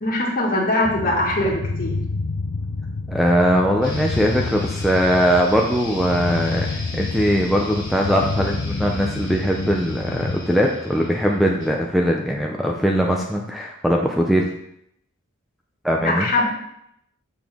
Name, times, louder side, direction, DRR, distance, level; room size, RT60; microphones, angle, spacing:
voice 1, 0.0-2.0 16.0-16.4, left 1 dB, 45° left, -2 dB, 1.7 m, -21 dB
sound 1, 0.8-10.4, left 3 dB, 75° left, 0.6 m, -29 dB
voice 2, 3.1-14.5 15.8-16.3, equal, ahead, 0 dB, 0.5 m, -20 dB
sound 2, 3.8-11.8, left 1 dB, 20° left, 1.8 m, -37 dB
7.0 x 5.8 x 3.5 m, 0.75 s
head